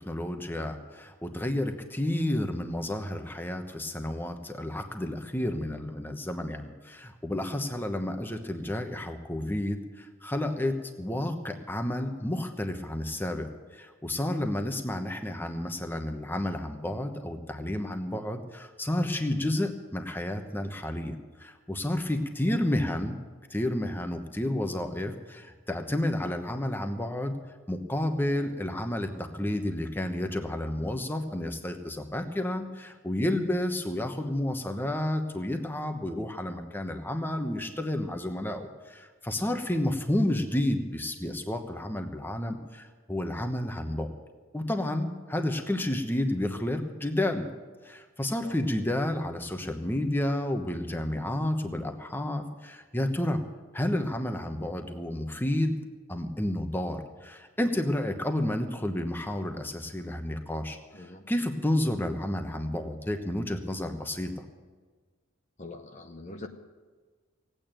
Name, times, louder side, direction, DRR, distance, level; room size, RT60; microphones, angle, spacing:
voice 1, 0.1-23.2 23.5-27.3 27.7-44.1 44.5-47.5 47.8-53.4 53.7-55.7 56.1-64.3, left 1 dB, 10° left, 6 dB, 1.0 m, -31 dB
voice 2, 60.9-61.3 65.6-66.5, left 2 dB, 35° left, 5 dB, 0.8 m, -43 dB
17.5 x 8.9 x 9.1 m, 1.4 s
head